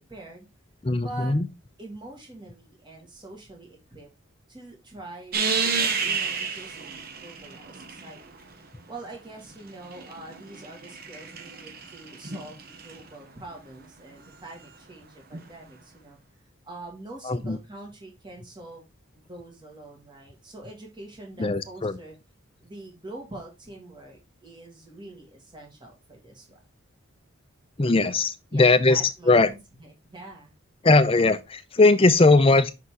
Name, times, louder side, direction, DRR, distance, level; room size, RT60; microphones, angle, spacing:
voice 1, 0.1-0.5 1.0-1.4 1.8-4.1 4.5-8.2 8.9-16.2 16.6-18.8 19.1-22.1 22.6-26.6 28.5-30.5 31.1-31.2, right 2 dB, 20° right, 1.8 m, -44 dB
voice 2, 0.8-1.5 17.2-17.6 21.4-22.0 27.8-29.5 30.8-32.7, left 3 dB, 25° left, 0.5 m, -19 dB
sound 1, 5.3-8.4 9.5-13.0 15.3-15.4, right 5 dB, 45° right, 0.8 m, -31 dB
5.7 x 4.2 x 4.8 m
head